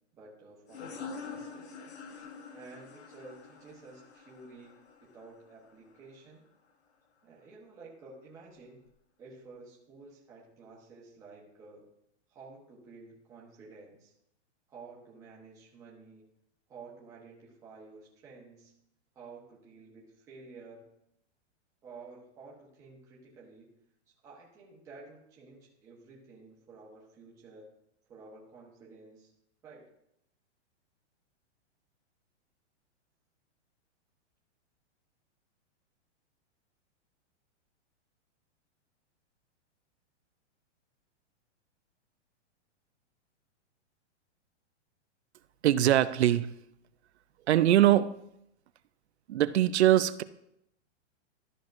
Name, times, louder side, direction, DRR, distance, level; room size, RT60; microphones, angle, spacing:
voice 1, 0.2-1.8 2.5-6.4 7.2-8.8 9.2-11.8 12.3-14.1 14.7-16.2 16.7-18.7 19.1-20.9 21.8-23.7 24.2-27.7 28.1-29.3 29.6-29.8, right 3 dB, 10° right, -5 dB, 1.0 m, -51 dB
sound 1, 0.7-6.0, left 5 dB, 65° left, 1.2 m, -46 dB
voice 2, 45.6-46.5 47.5-48.2 49.3-50.2, right 12 dB, 65° right, 15 dB, 0.5 m, -22 dB
13.0 x 6.0 x 2.5 m, 0.79 s
hypercardioid pair, 175°, 35 cm